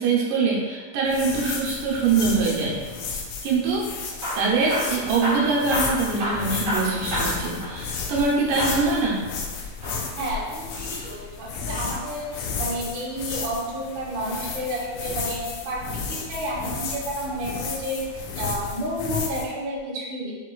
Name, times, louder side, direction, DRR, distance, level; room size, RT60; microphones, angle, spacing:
voice 1, 0.0-2.8 3.4-3.9 4.4-9.3, right 4 dB, 85° right, -4 dB, 2.3 m, -23 dB
sound 1, 1.1-19.4, left 5 dB, 80° left, 2.0 m, -33 dB
Hammer / Drill, 4.1-8.3 8.6-8.9 9.7-11.1 12.9-14.1 15.8-16.3 17.0-17.8 18.5-18.8 19.1-19.2 19.8-19.9, equal, 50° right, 1.9 m, -32 dB
voice 2, 10.2-15.8 16.1-18.0 18.3-20.5, equal, 70° right, -5 dB, 1.2 m, -31 dB
6.2 x 3.1 x 2.3 m, 1.4 s
omnidirectional pair, 3.5 m